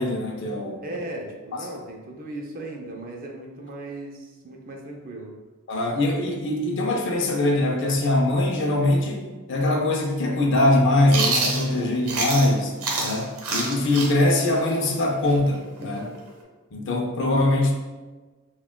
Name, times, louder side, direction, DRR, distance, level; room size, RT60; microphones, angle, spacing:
voice 1, 0.0-0.8 1.5-1.7 5.7-16.1 16.7-17.7, left 2 dB, 55° left, 2 dB, 0.5 m, -22 dB
voice 2, 0.8-5.3, right 2 dB, 40° right, 0 dB, 0.5 m, -37 dB
Chewing mastication, 11.1-12.5 12.8-16.4, right 3 dB, 80° right, 0.8 m, -27 dB
5.8 x 2.3 x 2.2 m, 1.3 s
head